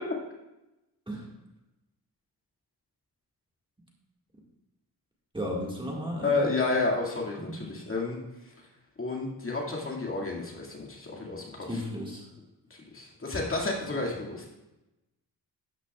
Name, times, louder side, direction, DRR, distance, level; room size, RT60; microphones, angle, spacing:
voice 1, 5.3-6.5 7.5-7.6 11.7-12.2, equal, 15° right, -2 dB, 1.9 m, -34 dB
voice 2, 6.2-8.2 8.4-8.5 9.0-11.8 12.9-14.4, left 3 dB, 35° left, -2 dB, 2.2 m, -31 dB
12.5 x 9.9 x 2.4 m, 0.97 s
wide cardioid pair, 125°, 38 cm